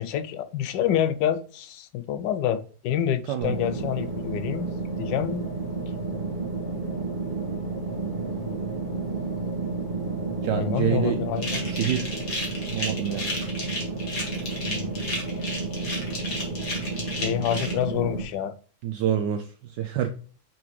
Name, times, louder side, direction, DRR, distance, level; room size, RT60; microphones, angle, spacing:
voice 1, 0.0-4.7 5.0-5.5 10.5-11.6 14.6-15.0 17.2-18.5, left 10 dB, 70° left, 1.2 m, -27 dB
sound 1, 3.4-18.2, right 3 dB, 30° right, 1.3 m, -31 dB
voice 2, 10.4-11.2 11.6-12.3 12.7-13.3 18.8-20.1, right 9 dB, 75° right, 1.1 m, -27 dB
sound 2, 11.4-17.7, left 1 dB, 45° left, 2.2 m, -33 dB
6.0 x 5.3 x 3.1 m
omnidirectional pair, 2.1 m